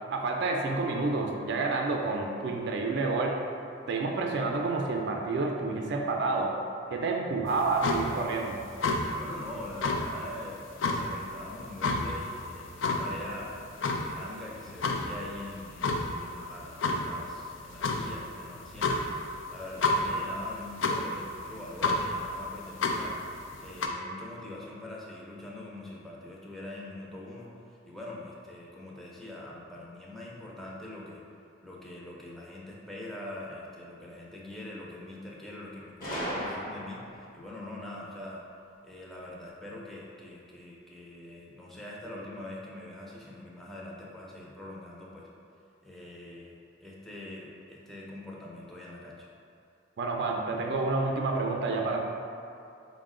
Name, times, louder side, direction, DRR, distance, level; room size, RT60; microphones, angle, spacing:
voice 1, 0.1-3.4 3.9-6.5 6.9-8.6 50.0-52.0, right 3 dB, 65° right, 1 dB, 0.4 m, -29 dB
sound 1, 7.5-23.9, left 2 dB, 85° left, 0.4 m, -32 dB
voice 2, 9.2-13.5 14.0-31.2 31.6-38.4 38.8-45.3 45.8-49.3, left 1 dB, ahead, -5 dB, 0.5 m, -43 dB
Gunshot gunfire, 36.0-37.2, equal, 50° left, 0.8 m, -35 dB
4.5 x 2.1 x 3.6 m, 2.6 s
head